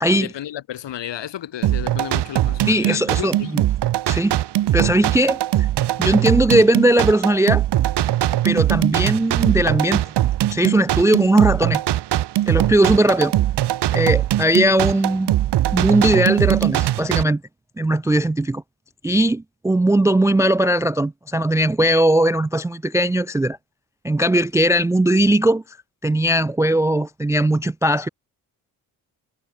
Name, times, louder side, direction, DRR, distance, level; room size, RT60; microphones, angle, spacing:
voice 1, 0.1-3.6, left 11 dB, 70° left, 3.0 m, -32 dB
sound 1, 1.6-17.2, right 13 dB, 60° right, 1.0 m, -21 dB
voice 2, 2.7-3.6 4.1-4.4 4.7-5.4 6.0-7.7 8.4-10.0 10.5-11.8 12.5-13.3 13.9-15.3 15.7-17.4 17.8-18.6 19.0-23.6 24.0-25.6 26.0-28.1, right 1 dB, 10° right, 0.3 m, -18 dB
supercardioid pair, 50°, 45 cm